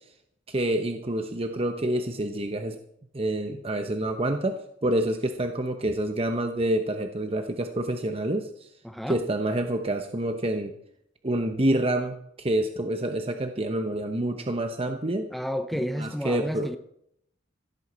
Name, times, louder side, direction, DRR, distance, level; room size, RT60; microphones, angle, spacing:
voice 1, 0.5-2.8 3.1-8.5 9.1-10.7 11.2-15.3 15.7-16.7, right 1 dB, 30° right, 1.0 m, -27 dB
voice 2, 8.8-9.2 15.3-16.8, equal, ahead, 0.7 m, -31 dB
16.0 x 14.5 x 4.4 m
head